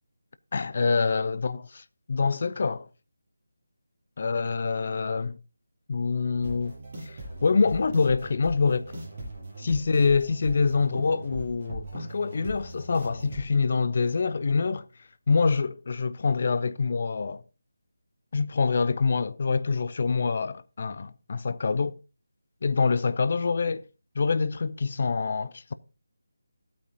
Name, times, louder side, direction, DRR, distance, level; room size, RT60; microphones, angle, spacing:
voice 1, 0.5-2.9 4.2-5.4 5.9-6.8 7.1-9.0 9.6-14.8 15.3-17.4 18.3-22.0 22.6-23.8 24.2-25.7, left 4 dB, 40° left, 0.5 m, -25 dB
sound 1, 6.4-13.4, right 1 dB, 30° right, 6.0 m, -40 dB
15.0 x 8.7 x 2.8 m
figure-of-eight pair, 155°, 0 cm